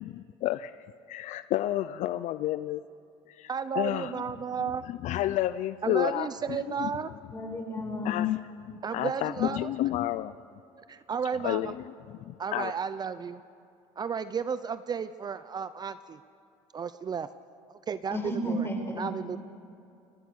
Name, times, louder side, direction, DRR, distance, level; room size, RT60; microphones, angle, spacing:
voice 1, 0.0-2.8 3.3-7.2 8.0-10.4 11.3-12.7, left 14 dB, 65° left, 14 dB, 0.6 m, -31 dB
voice 2, 3.5-4.8 5.8-7.1 8.8-9.7 10.9-11.7 12.4-13.4 14.0-16.2 16.7-17.3 17.7-18.2 19.0-19.4, right 6 dB, 30° right, 13 dB, 0.6 m, -33 dB
voice 3, 7.3-8.3 18.1-19.1, right 1 dB, 20° left, 2 dB, 5.0 m, -33 dB
29.5 x 19.0 x 6.4 m, 2.6 s
cardioid pair, 110°, 13 cm